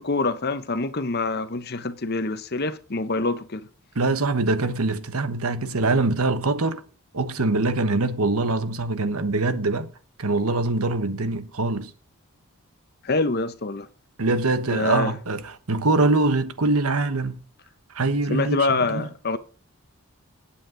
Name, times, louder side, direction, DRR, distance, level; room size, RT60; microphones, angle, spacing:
voice 1, 0.0-3.7 13.0-13.9 14.7-15.1 18.3-19.4, left 3 dB, 45° left, 0.9 m, -25 dB
voice 2, 3.9-6.8 7.1-9.9 10.2-11.9 14.2-17.4 17.9-19.1, right 3 dB, 85° right, 1.3 m, -23 dB
17.5 x 8.7 x 3.9 m
head